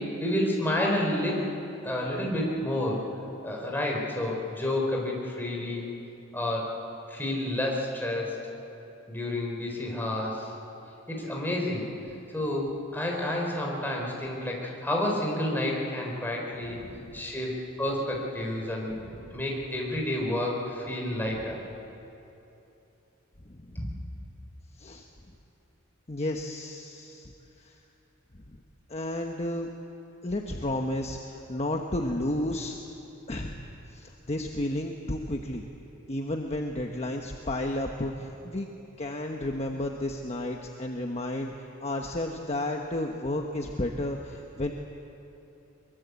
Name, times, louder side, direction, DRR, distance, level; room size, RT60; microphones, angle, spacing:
voice 1, 0.0-1.4 1.8-3.0 3.4-5.9 6.3-6.7 7.1-8.4 9.1-10.5 11.1-11.9 12.3-16.8 17.1-18.9 19.3-21.6 23.7-23.9, left 1 dB, 10° left, -1 dB, 4.5 m, -30 dB
voice 2, 16.7-17.2 19.2-19.3 23.5-23.7 24.8-25.0 26.1-27.3 27.6-27.8 28.5-28.6 28.9-29.7 30.2-32.8 33.3-33.6 33.9-35.6 36.1-38.7 39.0-41.5 41.8-44.7, left 1 dB, 35° left, 2 dB, 1.1 m, -32 dB
23.5 x 23.0 x 8.3 m, 2.9 s
head